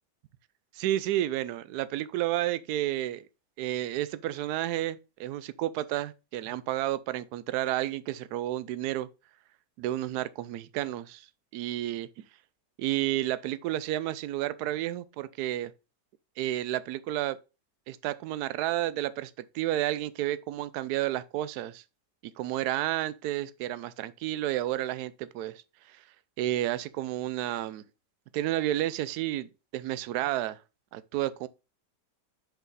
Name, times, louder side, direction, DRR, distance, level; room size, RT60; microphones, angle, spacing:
voice 1, 0.7-3.3 3.6-9.1 9.8-11.3 11.5-12.1 12.8-15.7 16.4-17.4 17.9-21.8 22.4-25.6 25.9-26.0 26.4-27.8 28.3-30.6 30.9-31.5, right 14 dB, 75° right, 1.1 m, -31 dB
6.5 x 5.0 x 3.9 m
omnidirectional pair, 1.8 m